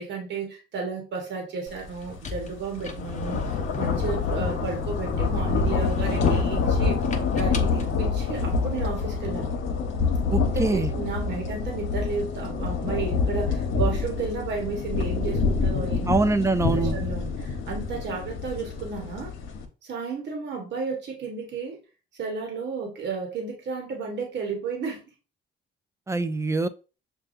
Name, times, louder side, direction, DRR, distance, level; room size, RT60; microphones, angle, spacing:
voice 1, 0.0-7.0 7.3-9.5 10.3-16.3 16.7-19.3 19.8-21.8 22.1-25.1, right 5 dB, 65° right, 1 dB, 1.2 m, -33 dB
sound 1, 1.8-2.0 2.4-19.7, left 4 dB, 75° left, 0.8 m, -26 dB
sound 2, 1.8-5.1 5.6-9.0, left 4 dB, 35° left, 0.7 m, -37 dB
voice 2, 10.3-10.9 16.1-17.0 26.1-26.7, right 3 dB, 15° right, 12 dB, 0.4 m, -24 dB
6.5 x 2.3 x 2.5 m, 0.33 s
cardioid pair, 90°, 20 cm